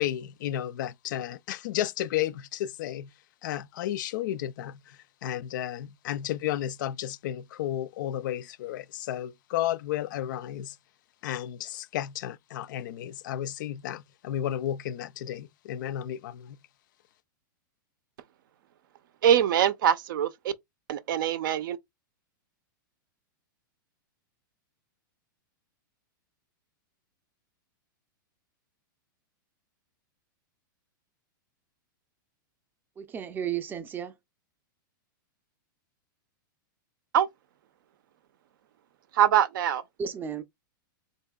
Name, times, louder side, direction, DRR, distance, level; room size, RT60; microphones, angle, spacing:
voice 1, 0.0-3.1 3.4-10.8 11.2-16.6, left 12 dB, 60° left, 0.4 m, -33 dB
voice 2, 19.2-20.5 20.9-21.8 37.1-37.3 39.1-39.8, right 9 dB, 70° right, 0.5 m, -23 dB
voice 3, 33.0-34.1 40.0-40.4, right 8 dB, 15° right, 0.5 m, -33 dB
4.0 x 2.7 x 2.2 m
hypercardioid pair, 140°, 11 cm